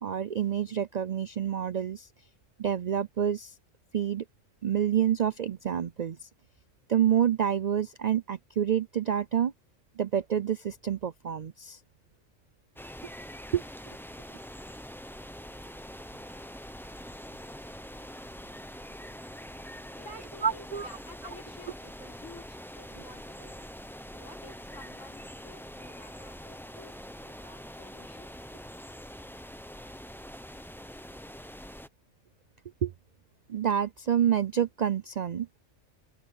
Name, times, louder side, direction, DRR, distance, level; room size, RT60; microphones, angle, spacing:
voice 1, 0.0-2.1 2.6-3.5 3.9-4.2 4.6-6.3 6.9-9.5 10.0-11.8 13.5-13.6 20.4-20.9 32.8-32.9 33.5-35.6, right 9 dB, 85° right, 0.3 m, -28 dB
sound 1, 12.8-31.9, equal, ahead, 0.6 m, -44 dB
voice 2, 20.0-23.7 24.1-28.3, left 2 dB, 70° left, 5.5 m, -51 dB
open air
omnidirectional pair, 1.4 m